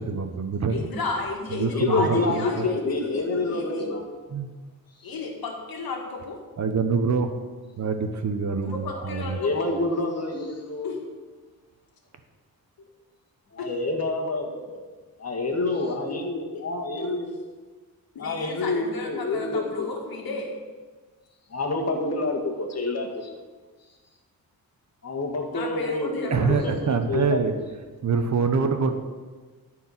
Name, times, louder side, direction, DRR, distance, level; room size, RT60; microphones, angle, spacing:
voice 1, 0.0-0.9 1.5-2.7 4.3-4.5 6.6-7.3 7.8-9.4 26.3-27.6 28.0-28.9, right 5 dB, 50° right, 7 dB, 1.0 m, -25 dB
voice 2, 0.7-4.0 5.0-6.4 8.6-9.7 10.8-11.0 13.6-13.7 16.1-16.2 16.4-16.6 17.0-17.1 18.2-20.6 25.5-26.7, left 3 dB, 75° left, 1 dB, 1.9 m, -33 dB
voice 3, 1.7-4.0 9.4-10.9 13.5-14.8 15.2-17.3 18.2-19.9 21.5-23.3 25.0-27.4, left 2 dB, 45° left, 1 dB, 1.9 m, -28 dB
13.5 x 4.7 x 5.9 m, 1.4 s
cardioid pair, 100°, 36 cm